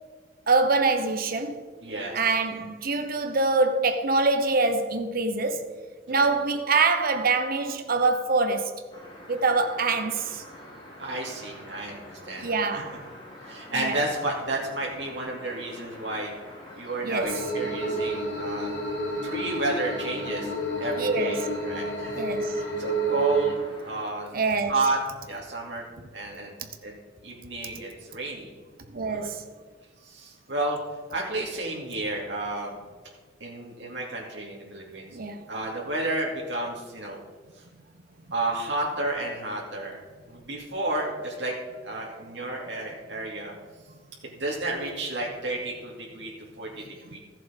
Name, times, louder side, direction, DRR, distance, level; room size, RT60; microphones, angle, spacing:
voice 1, 0.5-1.6 2.1-5.6 6.1-8.7 9.3-10.4 12.4-13.0 13.8-14.0 17.0-17.4 21.0-21.5 22.1-22.6 24.3-24.7 28.9-29.4 35.1-35.4, right 3 dB, 50° right, 0.9 m, -25 dB
voice 2, 1.8-2.2 6.1-6.3 11.0-12.9 13.4-16.3 16.8-18.7 19.2-20.5 20.8-22.2 22.5-23.6 23.8-24.3 24.7-25.0 25.3-25.8 26.1-26.5 26.8-26.9 27.2-28.5 29.1-29.3 30.0-30.8 31.1-32.8 33.4-35.2 35.5-37.2 37.6-37.7 38.3-40.0 40.3-41.5 41.8-43.5 44.3-47.2, right 2 dB, 70° right, 2.7 m, -31 dB
sound 1, 8.9-24.0, left 1 dB, 25° left, 2.8 m, -46 dB
sound 2, 17.2-23.5, right 1 dB, 65° left, 2.2 m, -30 dB
14.0 x 7.6 x 5.3 m
head